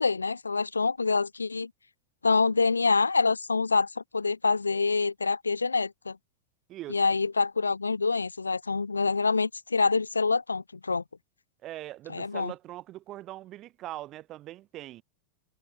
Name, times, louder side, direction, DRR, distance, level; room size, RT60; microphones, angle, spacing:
voice 1, 0.0-1.7 2.2-6.2 6.9-11.0 12.1-12.5, left 4 dB, 80° left, 0.7 m, -26 dB
voice 2, 6.7-7.0 11.6-15.0, right 15 dB, 35° right, 3.4 m, -41 dB
figure-of-eight pair, 90°, 0 cm